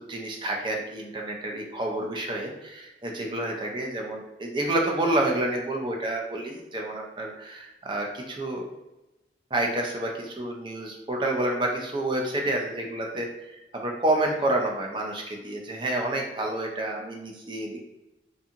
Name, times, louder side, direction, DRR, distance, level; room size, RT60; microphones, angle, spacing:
voice 1, 0.0-8.7 9.5-17.8, right 1 dB, 25° right, 1 dB, 0.4 m, -29 dB
2.7 x 2.6 x 2.4 m, 0.95 s
head